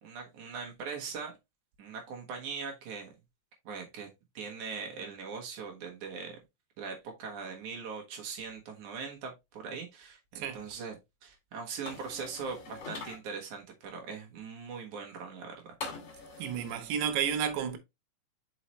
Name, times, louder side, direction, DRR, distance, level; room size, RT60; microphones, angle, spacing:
voice 1, 0.0-1.3 1.8-3.1 3.6-4.1 4.3-6.4 6.8-15.5 16.3-16.4, right 5 dB, 60° right, 2.1 m, -41 dB
voice 2, 10.4-10.7 16.4-17.8, right 8 dB, 80° right, 3.1 m, -31 dB
sound 1, 11.9-13.2 15.8-16.8, left 4 dB, 50° left, 2.7 m, -43 dB
5.7 x 5.6 x 3.1 m
omnidirectional pair, 5.1 m